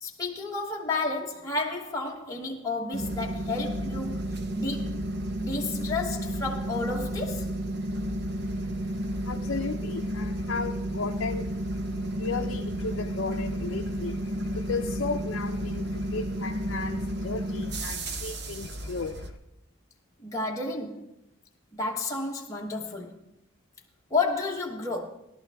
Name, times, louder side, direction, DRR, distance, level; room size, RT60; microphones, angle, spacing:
voice 1, 0.0-5.0 5.4-7.5 20.2-21.1 21.7-23.1 24.1-25.1, left 3 dB, 15° left, 1.1 m, -31 dB
sound 1, 2.9-19.3, right 1 dB, 50° right, 1.0 m, -32 dB
voice 2, 8.5-19.4, left 4 dB, 60° left, 0.6 m, -35 dB
17.0 x 11.5 x 3.5 m
head